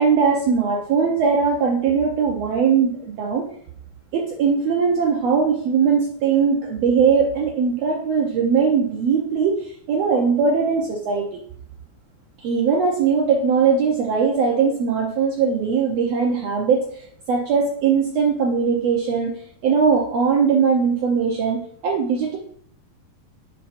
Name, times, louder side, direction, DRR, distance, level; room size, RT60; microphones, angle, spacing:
voice 1, 0.0-3.5 4.1-11.4 12.4-19.3 19.6-22.4, right 6 dB, 80° right, -1 dB, 1.5 m, -20 dB
9.7 x 5.6 x 2.5 m, 0.62 s
omnidirectional pair, 4.0 m